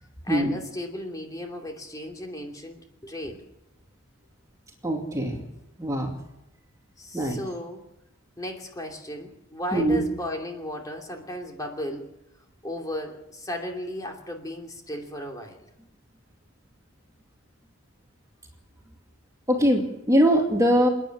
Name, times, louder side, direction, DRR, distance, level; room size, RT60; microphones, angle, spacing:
voice 1, 0.2-3.4 7.0-7.8 8.4-12.1 12.6-15.6, left 1 dB, 15° left, 2 dB, 2.8 m, -35 dB
voice 2, 4.8-5.4 5.8-6.2 7.1-7.4 9.7-10.0 19.5-20.9, equal, 15° right, 1 dB, 2.4 m, -22 dB
28.0 x 10.0 x 9.8 m, 0.87 s
head